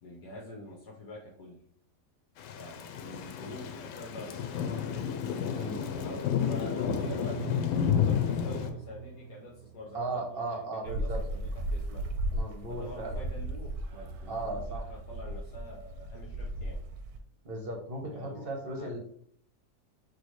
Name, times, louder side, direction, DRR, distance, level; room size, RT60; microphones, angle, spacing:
voice 1, 0.0-1.6 2.6-5.0 5.8-7.6 7.9-12.0 12.7-16.8 18.1-18.9, equal, 70° left, -2 dB, 1.3 m, -46 dB
Thunder / Rain, 2.4-8.7, left 8 dB, 85° left, 1.2 m, -31 dB
voice 2, 5.5-5.9 9.9-11.2 12.3-13.1 14.3-14.8 17.4-19.0, right 2 dB, 40° right, 2 dB, 0.9 m, -36 dB
sound 1, 6.9-10.8 12.6-13.1 13.4-13.5 13.8-14.4, right 7 dB, 85° right, 1.2 m, -44 dB
sound 2, 10.8-17.2, right 1 dB, 70° right, 1.1 m, -36 dB
6.1 x 2.7 x 3.1 m, 0.64 s
omnidirectional pair, 1.8 m